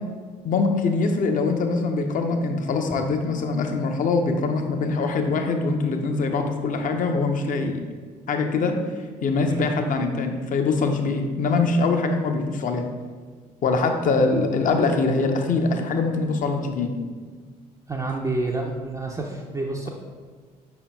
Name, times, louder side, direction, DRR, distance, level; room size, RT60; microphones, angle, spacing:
voice 1, 0.4-7.8 8.3-8.8 9.2-12.8 13.6-16.9, left 3 dB, 40° left, 5 dB, 0.6 m, -23 dB
voice 2, 17.9-19.9, right 2 dB, 15° right, -1 dB, 0.4 m, -28 dB
5.1 x 4.5 x 2.2 m, 1.5 s
figure-of-eight pair, 45°, 21 cm